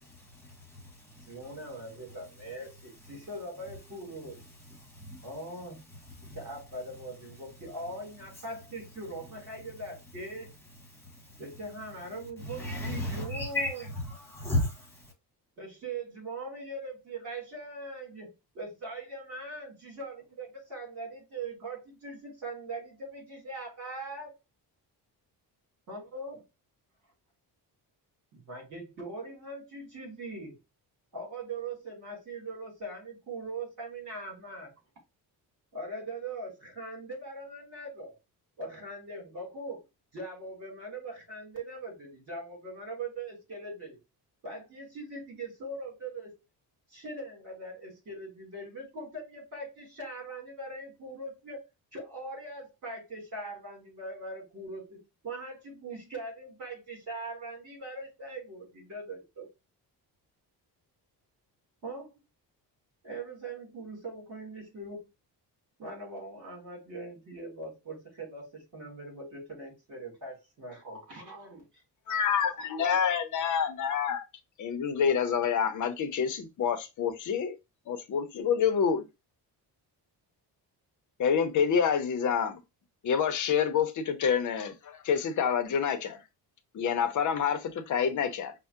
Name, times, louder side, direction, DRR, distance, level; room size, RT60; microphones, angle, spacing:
voice 1, 0.4-0.8 1.1-1.3 4.7-5.3 6.1-6.4 12.4-14.9, left 1 dB, 5° left, 1.2 m, -33 dB
voice 2, 1.3-4.4 5.2-5.8 6.3-10.5 11.4-13.8 15.6-24.3 25.9-26.3 28.3-30.5 31.1-34.7 35.7-38.1 38.6-39.8 40.1-44.0 44.4-46.3 46.9-51.6 51.9-59.5 61.8-62.1 63.0-65.1 65.8-71.7, right 2 dB, 45° right, 2.4 m, -41 dB
voice 3, 72.1-74.3 74.6-77.6 77.9-79.1 81.2-82.6 83.0-86.2 86.7-88.5, left 7 dB, 45° left, 0.6 m, -27 dB
5.4 x 2.1 x 2.4 m
cardioid pair, 145°, 41 cm